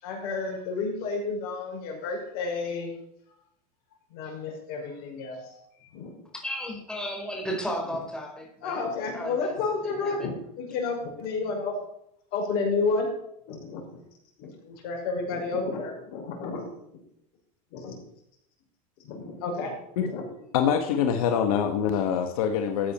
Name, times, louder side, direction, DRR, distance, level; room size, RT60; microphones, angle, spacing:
voice 1, 0.0-2.9 4.1-6.2 8.6-11.7 12.3-13.1 13.5-13.8 14.4-16.7 17.7-18.0 19.0-20.2 20.9-21.0, left 4 dB, 55° left, 1 dB, 5.8 m, -31 dB
voice 2, 6.3-8.8 9.1-9.5 9.8-10.4, equal, 5° left, 1 dB, 4.5 m, -34 dB
voice 3, 20.5-22.9, left 8 dB, 75° left, 6 dB, 1.5 m, -25 dB
14.5 x 9.1 x 4.3 m, 0.73 s
supercardioid pair, 115°, 19 cm